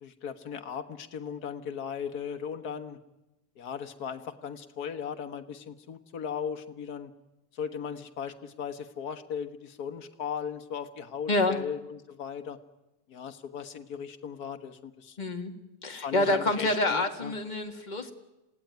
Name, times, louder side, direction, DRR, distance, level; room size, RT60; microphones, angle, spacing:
voice 1, 0.0-3.0 3.6-7.1 7.5-12.6 13.1-15.2 15.9-17.3, left 7 dB, 65° left, 9 dB, 1.9 m, -37 dB
voice 2, 11.3-11.6 15.2-15.5 15.8-18.1, left 2 dB, 25° left, 5 dB, 2.0 m, -27 dB
27.0 x 17.5 x 9.4 m, 1.0 s
omnidirectional pair, 1.8 m